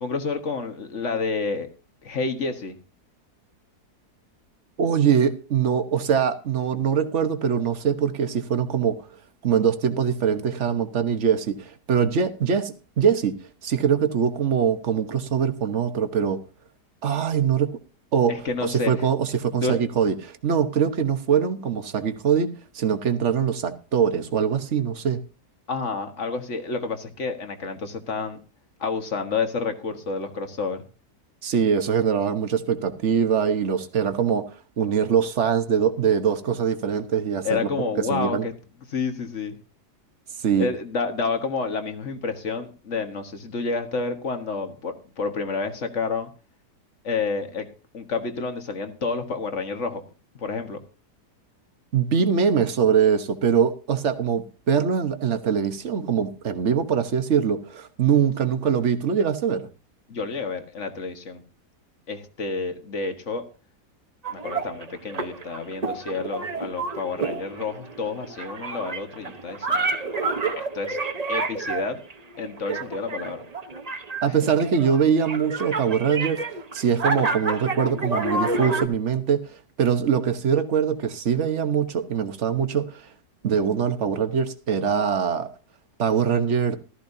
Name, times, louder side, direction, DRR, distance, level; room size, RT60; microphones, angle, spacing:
voice 1, 0.0-1.7 2.0-2.7 18.3-18.9 19.5-19.8 25.7-28.4 28.8-30.8 37.4-38.5 38.9-39.6 40.6-46.3 47.0-47.7 47.9-50.0 50.4-50.8 60.1-61.4 62.1-63.4 64.3-71.0 71.3-72.0 72.4-73.4 74.3-74.5, left 4 dB, 50° left, 1.8 m, -29 dB
voice 2, 4.8-9.0 9.4-13.3 13.6-16.4 17.0-17.7 18.1-18.3 18.6-25.2 31.4-34.4 34.8-37.6 38.1-38.5 40.4-40.7 51.9-59.7 74.2-79.4 79.8-83.0 83.4-85.5 86.0-86.8, right 7 dB, 50° right, 1.3 m, -23 dB
sound 1, 64.2-78.9, right 3 dB, 30° right, 1.0 m, -29 dB
14.5 x 13.5 x 2.7 m
omnidirectional pair, 1.7 m